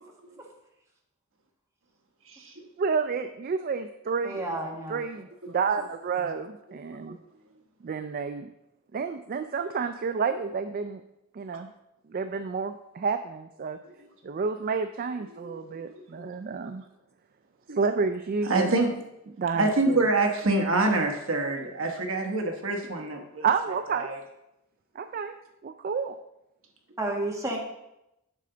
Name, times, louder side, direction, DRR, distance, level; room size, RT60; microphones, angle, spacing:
voice 1, 2.8-4.4 4.9-7.2 7.8-8.5 8.9-11.0 11.3-11.7 12.1-13.8 14.2-16.8 17.7-18.7 19.4-20.0 23.4-24.2 25.0-25.3 25.6-26.2, right 5 dB, 40° right, 9 dB, 0.3 m, -30 dB
voice 2, 4.2-5.0 27.0-27.6, right 2 dB, 15° right, -1 dB, 1.4 m, -31 dB
voice 3, 15.9-16.3 16.6-16.7 17.7-17.8 18.5-18.9 19.5-23.4 23.9-24.2, right 2 dB, 60° right, 3 dB, 1.1 m, -26 dB
8.3 x 6.8 x 3.8 m, 0.87 s
head